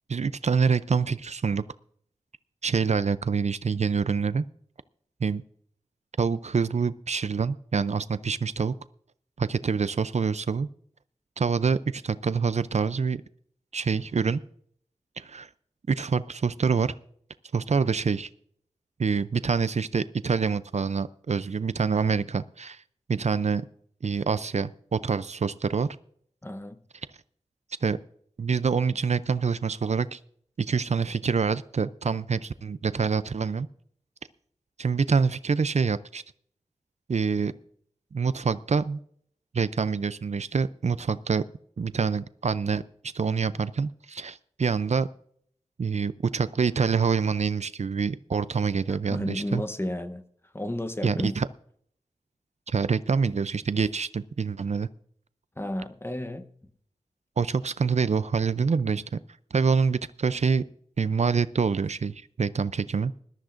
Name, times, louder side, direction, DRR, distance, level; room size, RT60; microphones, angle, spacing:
voice 1, 0.1-1.6 2.6-4.4 5.2-5.4 6.2-8.7 9.4-10.7 11.4-13.2 13.7-14.4 15.2-15.5 15.9-16.9 17.5-18.3 19.0-22.8 23.1-23.6 24.0-25.9 27.8-28.0 28.4-30.2 30.6-33.7 34.8-36.2 37.1-37.5 38.1-39.0 39.5-41.4 41.8-42.8 43.1-45.1 45.8-49.6 51.0-51.5 52.7-54.9 57.4-59.0 59.5-60.6 61.0-63.1, right 5 dB, 60° right, 15 dB, 0.4 m, -26 dB
voice 2, 26.4-26.8 49.1-50.2 50.5-51.4 55.6-56.5, left 1 dB, 20° left, 10 dB, 0.9 m, -32 dB
20.5 x 13.0 x 2.5 m, 0.64 s
wide cardioid pair, 75°, 13 cm